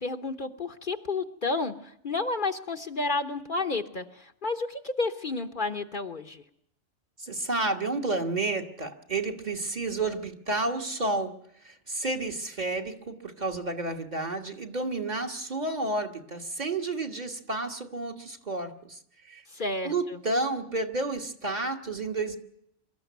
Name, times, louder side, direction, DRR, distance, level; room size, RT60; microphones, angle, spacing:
voice 1, 0.0-6.4 19.5-20.2, left 3 dB, 45° left, 7 dB, 1.0 m, -31 dB
voice 2, 7.2-11.4 11.6-19.0 19.2-19.4 19.8-22.4, right 2 dB, 35° right, 3 dB, 1.6 m, -31 dB
23.5 x 13.5 x 9.3 m, 0.77 s
omnidirectional pair, 1.2 m